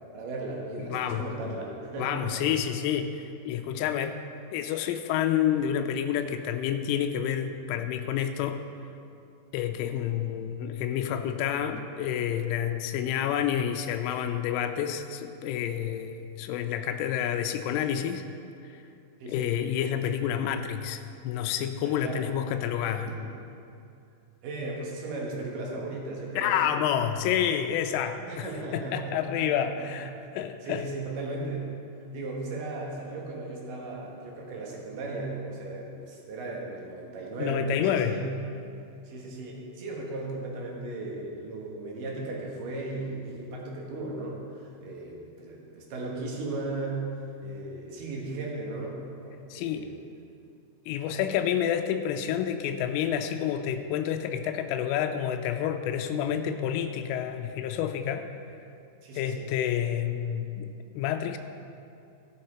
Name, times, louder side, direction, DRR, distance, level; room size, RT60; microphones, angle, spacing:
voice 1, 0.1-2.4 19.2-19.5 21.8-22.2 23.1-23.2 24.4-26.6 28.3-30.1 30.6-31.7 32.1-38.3 39.0-49.9 59.0-59.5, right 2 dB, 65° right, -2 dB, 2.3 m, -36 dB
voice 2, 0.8-1.3 2.0-4.2 4.5-8.6 9.5-18.2 18.6-18.8 19.3-23.1 26.4-30.9 37.4-38.2 49.5-49.9 50.9-58.3 59.2-60.7 61.0-61.4, left 9 dB, 90° left, 6 dB, 3.1 m, -29 dB
15.5 x 6.6 x 4.3 m, 2.5 s
omnidirectional pair, 5.6 m